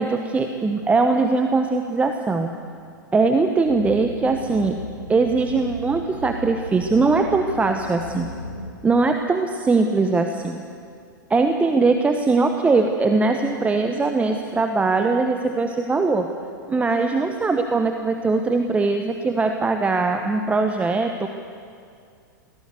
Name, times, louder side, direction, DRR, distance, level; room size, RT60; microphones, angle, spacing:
voice 1, 0.0-2.5 3.1-4.8 5.1-8.3 8.8-10.6 11.3-16.3 16.7-21.3, right 3 dB, 10° right, 5 dB, 1.0 m, -21 dB
sound 1, 3.6-8.7, equal, 85° left, 1.8 m, -36 dB
21.5 x 17.0 x 8.2 m, 2.3 s
figure-of-eight pair, 95°, 11 cm